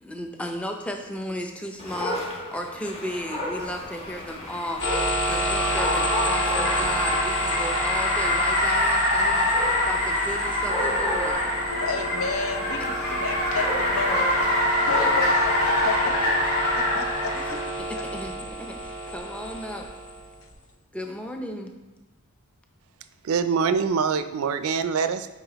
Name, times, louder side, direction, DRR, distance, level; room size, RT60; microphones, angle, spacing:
voice 1, 0.0-2.2 2.5-11.5 17.3-17.6 17.9-19.9 20.9-21.7, equal, 5° left, 0.5 m, -35 dB
Dog, 1.8-15.5, left 1 dB, 30° left, 1.3 m, -34 dB
Car, 3.7-17.7, left 1 dB, 90° left, 2.2 m, -25 dB
sound 1, 4.8-20.5, equal, 55° left, 1.0 m, -31 dB
voice 2, 11.7-12.9 13.2-14.3 14.8-16.5 16.8-17.6 17.9-18.0, left 4 dB, 70° left, 0.7 m, -31 dB
voice 3, 23.2-25.3, right 6 dB, 75° right, 0.4 m, -24 dB
8.8 x 4.7 x 3.0 m
head